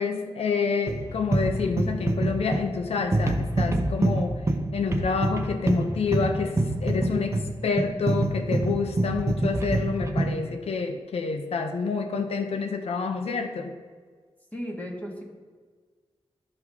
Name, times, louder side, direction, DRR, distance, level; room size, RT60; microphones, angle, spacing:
voice 1, 0.0-4.4 4.7-13.7, left 5 dB, 75° left, 6 dB, 0.7 m, -28 dB
sound 1, 0.9-10.4, right 2 dB, 25° right, 0.7 m, -26 dB
voice 2, 14.5-15.2, equal, 15° left, -1 dB, 1.5 m, -35 dB
12.5 x 4.8 x 3.6 m, 1.5 s
wide cardioid pair, 115°, 10 cm